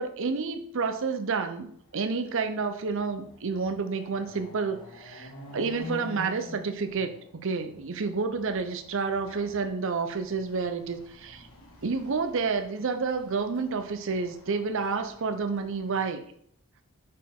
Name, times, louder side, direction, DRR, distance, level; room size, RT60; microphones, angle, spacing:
voice 1, 0.0-7.1 7.4-11.5 11.8-16.2, right 4 dB, 60° right, 8 dB, 0.6 m, -30 dB
Chatter / Car passing by / Motorcycle, 1.8-1.9 2.3-15.9, left 1 dB, 70° left, 1.5 m, -48 dB
6.3 x 4.2 x 3.7 m, 0.65 s
head